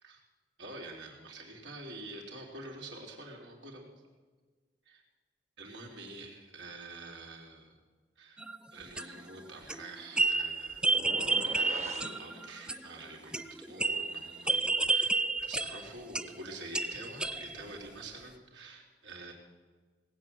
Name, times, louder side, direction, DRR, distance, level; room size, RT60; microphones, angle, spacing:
voice 1, 0.6-3.9 4.9-5.0 5.6-7.8 8.2-8.4 8.7-10.8 11.4-19.3, right 2 dB, 80° right, 0 dB, 3.7 m, -47 dB
sound 1, 8.4-8.7 9.0-9.3 9.7-12.9 13.3-16.4 16.7-17.6, right 3 dB, 5° right, 0.4 m, -31 dB
ss-sun up, 10.9-12.2, right 1 dB, 40° right, 1.6 m, -42 dB
19.5 x 8.5 x 7.8 m, 1.4 s
head